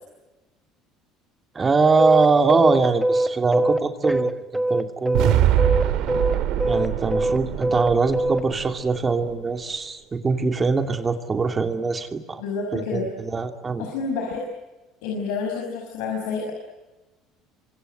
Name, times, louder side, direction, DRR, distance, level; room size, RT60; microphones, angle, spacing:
voice 1, 1.5-5.3 6.7-12.4 12.7-13.9, right 4 dB, 25° right, 6 dB, 2.6 m, -22 dB
sound 1, 2.0-5.3 5.6-8.4, right 1 dB, ahead, 1.2 m, -22 dB
sound 2, 5.1-9.3, right 11 dB, 70° right, 2.2 m, -23 dB
voice 2, 12.4-13.1 13.8-14.4 15.0-16.5, left 4 dB, 85° left, 1 dB, 5.8 m, -28 dB
27.0 x 25.0 x 7.9 m, 1.1 s
supercardioid pair, 110°, 0 cm